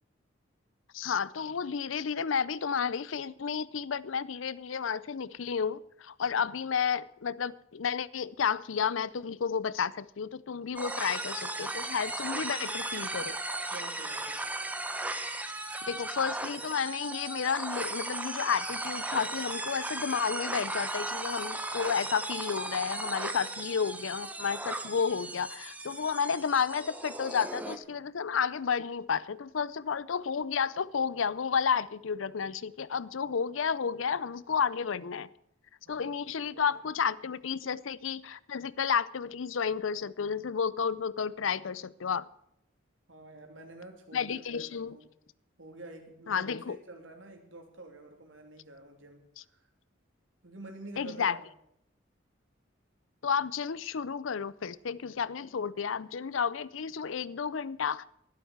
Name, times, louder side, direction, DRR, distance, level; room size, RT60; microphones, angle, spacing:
voice 1, 0.9-13.4 15.9-35.3 35.9-42.3 44.1-45.0 46.3-46.8 51.0-51.4 53.2-58.0, left 6 dB, 80° left, 0.6 m, -31 dB
sound 1, 10.8-27.8, right 2 dB, 10° right, 1.0 m, -36 dB
voice 2, 13.7-14.4 35.8-36.8 43.1-45.1 45.6-49.7 50.4-51.4, right 2 dB, 75° right, 3.0 m, -49 dB
12.0 x 11.5 x 7.9 m
head